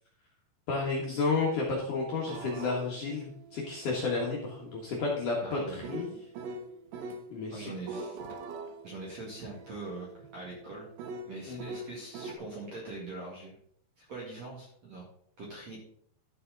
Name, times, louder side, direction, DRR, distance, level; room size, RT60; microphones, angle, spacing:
voice 1, 0.7-6.1 7.3-7.7 11.5-11.7, left 4 dB, 65° left, -3 dB, 2.1 m, -31 dB
sound 1, 2.2-7.3 7.7-12.3, right 3 dB, 85° right, 3.6 m, -43 dB
voice 2, 5.4-6.2 7.5-8.2 8.8-10.9 11.3-13.6 14.0-15.1 15.4-15.8, right 2 dB, 50° right, -3 dB, 2.1 m, -42 dB
12.0 x 7.1 x 3.9 m, 0.66 s
omnidirectional pair, 5.6 m